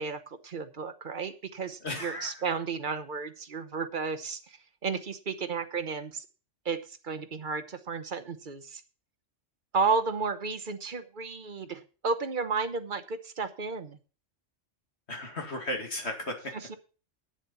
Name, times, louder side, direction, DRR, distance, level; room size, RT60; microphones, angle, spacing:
voice 1, 0.0-6.2 6.6-8.8 9.7-14.0 16.5-16.8, right 4 dB, 45° right, 11 dB, 1.1 m, -33 dB
voice 2, 1.8-2.4 15.1-16.4, left 1 dB, 60° left, 2 dB, 2.7 m, -35 dB
10.0 x 7.2 x 7.0 m, 0.36 s
omnidirectional pair, 1.3 m